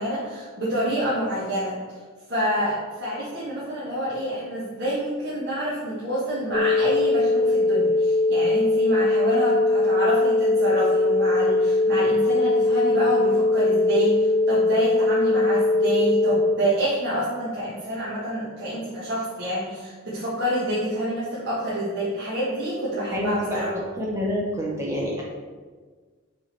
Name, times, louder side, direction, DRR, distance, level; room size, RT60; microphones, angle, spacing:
voice 1, 0.0-1.7 2.3-2.7 3.0-23.7, equal, 50° right, -10 dB, 1.5 m, -27 dB
sound 1, 6.5-16.5, left 2 dB, 20° left, 0.3 m, -21 dB
voice 2, 23.1-25.2, equal, 15° right, -3 dB, 0.8 m, -27 dB
5.4 x 4.3 x 4.5 m, 1.5 s
head